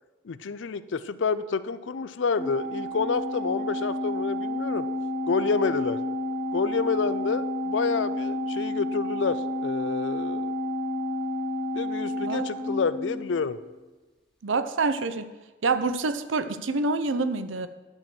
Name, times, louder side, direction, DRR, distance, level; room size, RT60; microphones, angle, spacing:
voice 1, 0.2-4.8 5.3-6.0 6.5-9.4 9.6-10.5 11.7-13.6, left 5 dB, 70° left, 14 dB, 0.5 m, -28 dB
Organ, 2.4-13.6, left 1 dB, ahead, 2.4 m, -31 dB
voice 2, 14.4-15.3 15.6-17.7, right 3 dB, 85° right, 11 dB, 0.7 m, -26 dB
11.0 x 4.5 x 7.6 m, 1.2 s
head